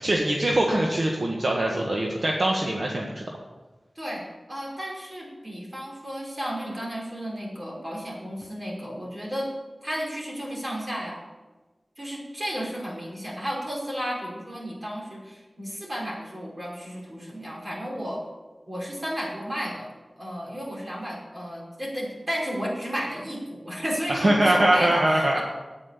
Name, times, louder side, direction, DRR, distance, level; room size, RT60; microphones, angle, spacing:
voice 1, 0.0-3.2 24.1-25.4, right 1 dB, 60° right, -1 dB, 1.6 m, -23 dB
voice 2, 4.5-9.5 9.8-11.2 12.0-18.2 18.7-19.9 20.2-25.4, equal, 35° right, -3 dB, 5.1 m, -33 dB
9.5 x 9.0 x 8.2 m, 1.2 s
wide cardioid pair, 75°, 0 cm